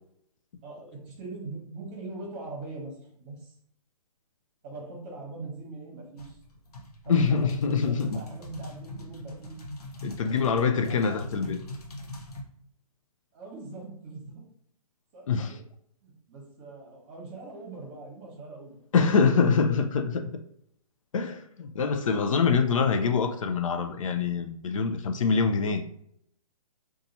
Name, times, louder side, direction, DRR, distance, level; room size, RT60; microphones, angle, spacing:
voice 1, 0.6-3.5 4.6-6.4 7.0-7.3 7.8-9.6 10.8-11.1 13.3-14.4 15.1-15.6 16.0-18.8 22.4-22.6, right 3 dB, 25° right, 1.0 m, -42 dB
sound 1, 6.2-12.4, left 1 dB, 80° left, 0.9 m, -41 dB
voice 2, 7.1-8.2 10.0-11.6 15.3-15.5 18.9-20.2 21.1-25.8, left 5 dB, 60° left, 0.5 m, -24 dB
2.7 x 2.3 x 4.0 m
hypercardioid pair, 155°, 19 cm